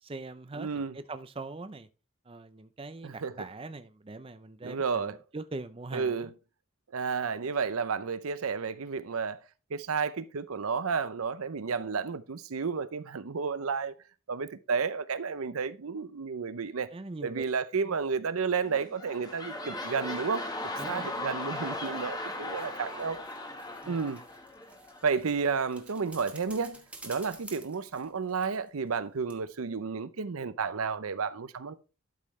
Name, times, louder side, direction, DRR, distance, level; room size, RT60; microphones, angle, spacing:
voice 1, 0.0-1.9 2.3-6.3 16.9-17.4 17.8-18.0 20.8-21.2 23.8-24.0, right 3 dB, 25° right, 0.5 m, -42 dB
voice 2, 0.5-0.9 3.0-3.3 4.6-5.2 5.9-6.3 6.9-9.4 9.7-13.9 14.3-16.9 17.2-20.4 20.9-23.2 23.9-24.2 25.0-31.7, right 5 dB, 85° right, 0.6 m, -32 dB
sound 1, 18.6-25.2 25.7-25.8, left 1 dB, 20° left, 1.3 m, -38 dB
sound 2, 22.1-29.0 29.3-29.4, right 2 dB, 5° right, 1.1 m, -52 dB
12.0 x 5.6 x 3.2 m
head